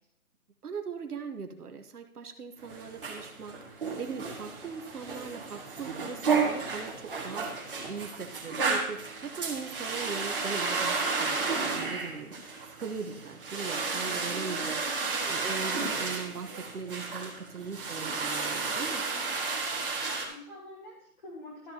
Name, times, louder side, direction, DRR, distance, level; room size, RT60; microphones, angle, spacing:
voice 1, 0.6-12.3 12.8-19.0, right 5 dB, 85° right, 6 dB, 1.3 m, -40 dB
sound 1, 2.6-20.3, right 4 dB, 35° right, 1.9 m, -32 dB
voice 2, 20.0-21.7, left 1 dB, 30° left, -6 dB, 1.9 m, -46 dB
13.0 x 7.9 x 2.9 m, 0.71 s
hypercardioid pair, 175°, 44 cm